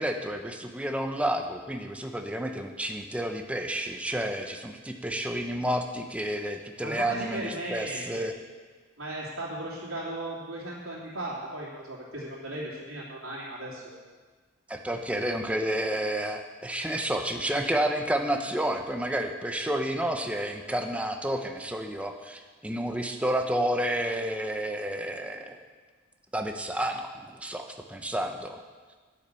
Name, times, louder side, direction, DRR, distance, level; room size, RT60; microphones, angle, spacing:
voice 1, 0.0-8.3 14.7-25.6 26.3-28.6, right 1 dB, 5° right, 4 dB, 0.9 m, -30 dB
voice 2, 6.8-8.3 9.0-13.8, right 1 dB, 65° right, -8 dB, 3.0 m, -36 dB
11.5 x 10.5 x 6.9 m, 1.4 s
head